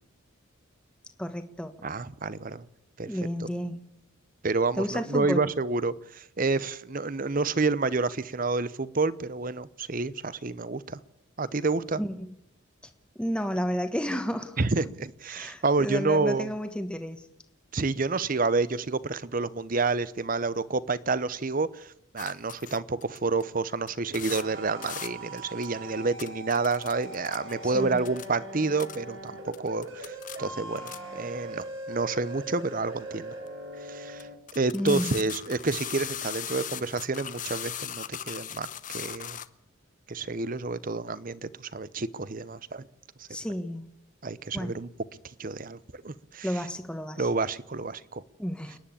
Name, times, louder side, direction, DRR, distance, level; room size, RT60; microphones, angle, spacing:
voice 1, 1.2-1.9 3.0-3.8 4.8-5.4 12.0-12.3 13.2-14.6 15.3-17.2 27.6-28.1 34.7-35.1 43.3-43.9 44.5-44.8 46.4-47.3 48.4-48.8, equal, 5° left, 8 dB, 1.3 m, -31 dB
voice 2, 1.8-2.6 3.0-3.1 3.4-3.5 4.4-11.0 11.4-12.0 14.6-16.5 17.7-33.3 33.8-34.3 34.5-39.4 40.1-42.8 44.2-44.9 45.4-46.5 47.2-48.2, right 3 dB, 40° right, 17 dB, 0.8 m, -29 dB
sound 1, 22.2-23.4 23.9-24.0 24.1-24.4 24.8-25.1 25.4-25.7 26.2-27.5 28.0-28.3 28.8-29.0 29.5-31.0 31.6-31.7 33.5-33.6 34.2-34.3 34.5-39.5, left 10 dB, 40° left, 0.8 m, -38 dB
sound 2, 23.9-34.3, right 1 dB, 70° right, 4.2 m, -41 dB
29.5 x 10.5 x 8.6 m, 0.86 s
head